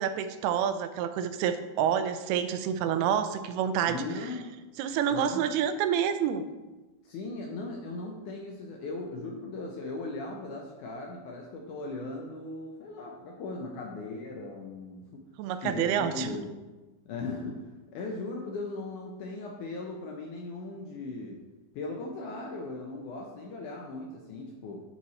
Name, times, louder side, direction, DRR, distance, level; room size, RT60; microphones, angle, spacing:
voice 1, 0.0-4.0 4.8-6.4 15.4-16.3, right 8 dB, 90° right, 10 dB, 2.5 m, -28 dB
voice 2, 3.9-4.5 5.1-5.4 7.0-15.2 15.6-16.5 17.1-17.7 17.9-21.4 21.7-24.8, left 3 dB, 75° left, 0 dB, 1.8 m, -38 dB
11.0 x 4.4 x 4.1 m, 1.2 s
omnidirectional pair, 4.4 m